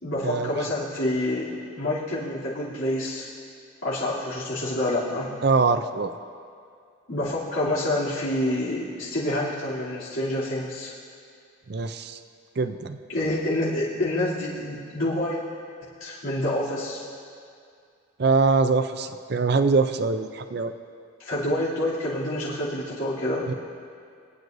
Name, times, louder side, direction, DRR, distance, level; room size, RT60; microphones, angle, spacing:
voice 1, 0.0-3.3 3.8-5.3 7.1-10.9 13.1-15.4 15.8-17.0 21.2-23.5, left 1 dB, 80° left, -10 dB, 3.0 m, -27 dB
voice 2, 5.4-6.2 11.7-12.2 12.6-13.0 18.2-20.7 23.4-23.5, right 4 dB, 50° right, 9 dB, 0.5 m, -23 dB
24.5 x 9.5 x 2.6 m, 2.3 s
head